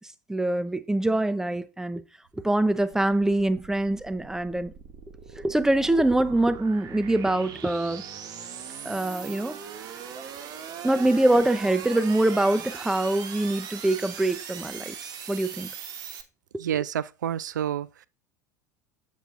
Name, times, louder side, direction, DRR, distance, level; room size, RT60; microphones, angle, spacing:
voice 1, 0.3-2.0 2.4-4.7 5.3-8.0 8.8-9.6 10.8-15.7, right 1 dB, 5° right, 0.7 m, -24 dB
sound 1, 2.4-16.2, right 8 dB, 45° right, 1.2 m, -40 dB
voice 2, 16.6-18.1, right 10 dB, 75° right, 0.4 m, -29 dB
7.8 x 7.3 x 2.5 m
figure-of-eight pair, 75°, 10 cm